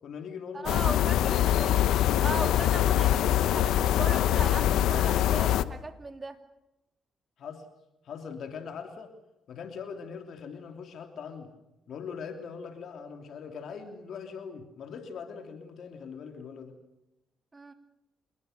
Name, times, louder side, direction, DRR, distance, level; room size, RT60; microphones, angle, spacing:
voice 1, 0.0-1.4 7.4-7.6 8.0-9.1 9.5-11.5 11.9-16.7, left 6 dB, 65° left, 5 dB, 3.0 m, -41 dB
voice 2, 0.5-1.8 2.2-6.4 17.5-17.7, right 3 dB, 25° right, 6 dB, 3.1 m, -38 dB
sound 1, 0.7-5.6, left 12 dB, 80° left, 0.9 m, -24 dB
27.5 x 20.5 x 6.7 m, 0.93 s
cardioid pair, 90°, 0 cm